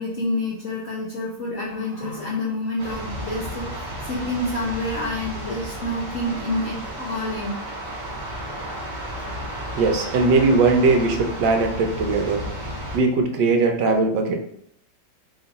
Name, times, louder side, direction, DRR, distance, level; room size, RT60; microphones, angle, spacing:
voice 1, 0.0-7.6, left 1 dB, 70° left, -4 dB, 0.7 m, -28 dB
sound 1, 2.8-13.0, equal, 35° right, 0.8 m, -33 dB
voice 2, 9.8-12.4 12.9-14.4, right 3 dB, 75° right, 3 dB, 1.2 m, -19 dB
3.0 x 2.9 x 3.9 m, 0.70 s
omnidirectional pair, 2.1 m